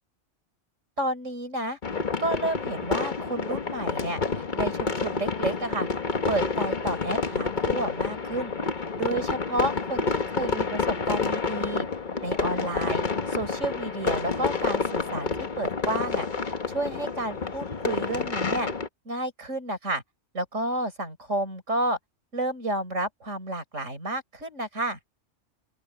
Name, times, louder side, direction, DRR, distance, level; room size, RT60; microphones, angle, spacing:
voice 1, 1.0-1.8 2.2-5.9 6.3-8.5 8.9-11.9 12.2-15.3 15.6-18.7 19.1-20.0 20.3-22.0 22.3-25.0, right 2 dB, 85° right, 5.6 m, -31 dB
sound 1, 1.8-18.9, left 4 dB, 40° left, 1.3 m, -29 dB
open air
omnidirectional pair, 1.3 m